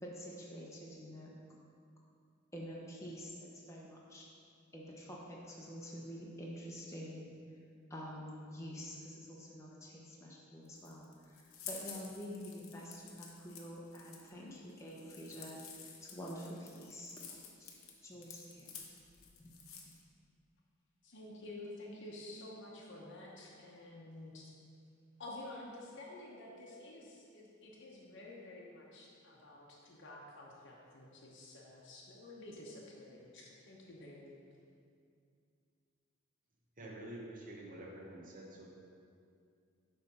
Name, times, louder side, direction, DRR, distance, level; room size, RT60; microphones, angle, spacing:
voice 1, 0.0-1.3 2.5-3.3 3.7-4.3 4.7-7.3 7.9-17.7 18.0-18.8, equal, 15° left, -4 dB, 0.8 m, -47 dB
sound 1, 10.7-20.0, left 6 dB, 90° left, 0.9 m, -51 dB
voice 2, 21.0-24.5 25.2-34.4, left 2 dB, 60° left, -3 dB, 0.9 m, -50 dB
voice 3, 36.8-38.7, right 1 dB, 40° right, -3 dB, 1.1 m, -48 dB
8.2 x 3.4 x 5.4 m, 2.4 s
head